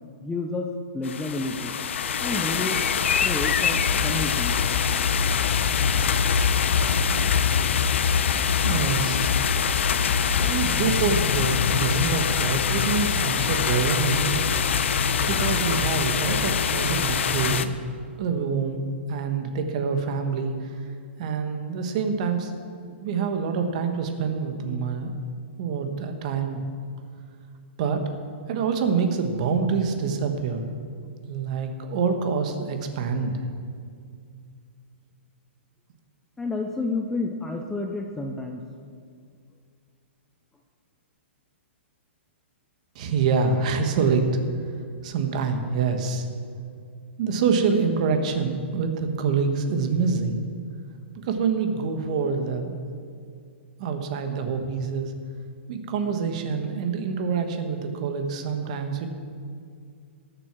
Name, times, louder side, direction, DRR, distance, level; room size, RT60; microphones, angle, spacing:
voice 1, 0.2-0.7 0.9-1.7 2.2-2.8 3.2-4.6 36.4-38.6, left 3 dB, 5° left, 2 dB, 0.4 m, -30 dB
sound 1, 1.0-17.7, left 7 dB, 70° left, 0.7 m, -23 dB
voice 2, 8.6-9.3 10.4-14.5 15.2-17.7 18.2-20.7 21.2-22.5 23.0-25.1 25.6-26.6 27.8-28.0 28.5-30.7 31.3-33.3 42.9-44.3 45.0-46.3 47.2-50.4 51.2-52.7 53.8-55.1 55.7-59.1, right 5 dB, 35° right, 6 dB, 1.3 m, -26 dB
19.5 x 7.6 x 6.1 m, 2.2 s
hypercardioid pair, 175°, 7 cm